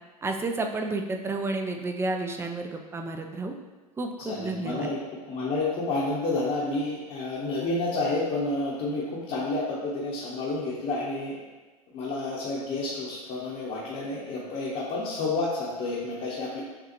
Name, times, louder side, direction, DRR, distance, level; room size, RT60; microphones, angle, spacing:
voice 1, 0.2-3.6 4.0-4.9, right 2 dB, 15° right, 4 dB, 0.4 m, -31 dB
voice 2, 4.3-5.0 5.3-11.4 11.9-16.6, left 2 dB, 40° left, -7 dB, 1.0 m, -30 dB
6.7 x 2.4 x 2.9 m, 1.2 s
hypercardioid pair, 90°, 20 cm